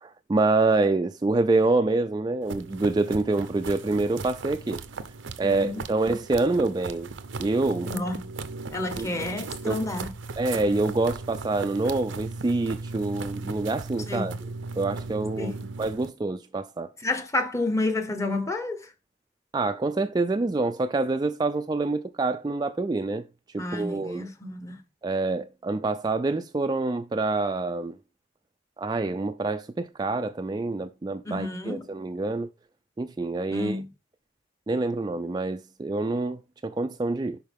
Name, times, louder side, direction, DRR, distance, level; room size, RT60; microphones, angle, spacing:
voice 1, 0.0-4.8 5.4-7.1 7.4-7.9 9.0-9.1 9.6-9.8 10.4-14.3 14.8-15.5 15.8-16.9 19.5-23.2 23.5-24.2 25.0-27.9 28.8-32.5 33.0-33.8 34.7-37.4, right 3 dB, 20° right, 0.3 m, -26 dB
sound 1, 2.4-16.1, right 3 dB, 85° right, 0.7 m, -37 dB
voice 2, 5.4-5.9 7.8-8.3 8.7-10.1 14.1-14.3 15.4-15.6 17.0-18.9 23.6-24.8 31.2-31.9 33.5-33.9, left 2 dB, 15° left, 1.0 m, -30 dB
10.5 x 4.4 x 3.5 m
head